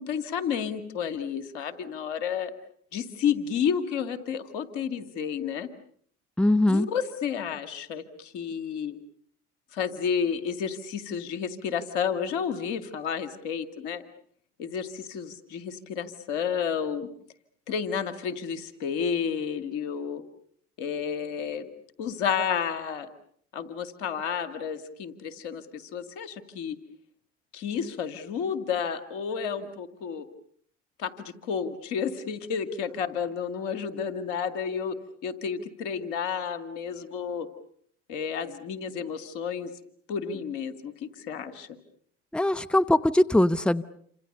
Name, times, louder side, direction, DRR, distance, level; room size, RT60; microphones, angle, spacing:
voice 1, 0.0-2.5 2.9-5.7 6.7-9.0 9.7-14.0 14.6-17.1 17.7-20.2 20.8-21.7 22.0-23.1 23.5-26.8 27.5-30.3 31.0-35.0 35.2-37.5 38.1-39.7 40.1-41.8, left 7 dB, 80° left, 11 dB, 2.2 m, -31 dB
voice 2, 6.4-6.9 42.3-43.8, left 1 dB, 5° left, 11 dB, 1.1 m, -21 dB
28.5 x 26.0 x 6.7 m, 0.63 s
hypercardioid pair, 60°, 36 cm